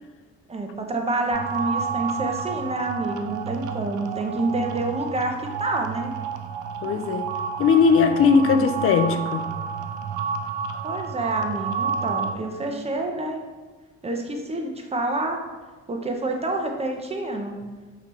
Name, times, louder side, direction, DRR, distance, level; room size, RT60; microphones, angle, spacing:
voice 1, 0.5-6.1 10.8-13.4 14.0-15.4 15.9-17.6, right 2 dB, 20° right, 3 dB, 0.7 m, -28 dB
sound 1, 1.3-12.3, right 6 dB, 85° right, 0.5 m, -30 dB
voice 2, 6.8-7.3 7.6-9.5, left 5 dB, 50° left, 7 dB, 0.4 m, -19 dB
5.7 x 2.9 x 3.1 m, 1.4 s
cardioid pair, 90°, 30 cm